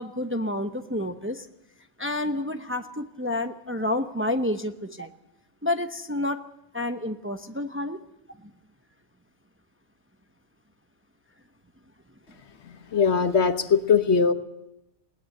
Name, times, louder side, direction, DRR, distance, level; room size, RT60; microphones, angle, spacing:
voice 1, 0.0-1.5 2.0-5.1 5.6-6.4 6.7-8.0, left 1 dB, 10° right, 7 dB, 0.8 m, -29 dB
voice 2, 12.7-14.3, left 5 dB, 70° left, 9 dB, 1.5 m, -21 dB
20.5 x 18.0 x 7.9 m, 0.88 s
omnidirectional pair, 1.2 m